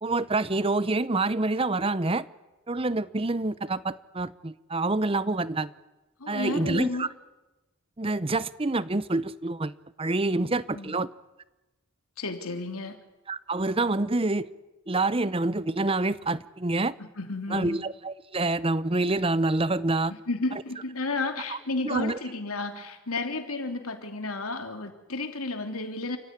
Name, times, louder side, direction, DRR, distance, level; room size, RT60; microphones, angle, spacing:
voice 1, 0.0-2.3 2.7-5.7 6.3-7.1 8.0-11.1 13.3-14.5 14.9-17.0 17.5-20.1 21.5-21.6 21.8-22.2, right 2 dB, 25° right, 17 dB, 0.7 m, -27 dB
voice 2, 6.2-7.1 10.4-11.0 12.2-13.0 17.0-17.8 20.1-26.2, left 3 dB, 85° left, 6 dB, 3.1 m, -32 dB
29.0 x 15.0 x 9.9 m, 1.1 s
head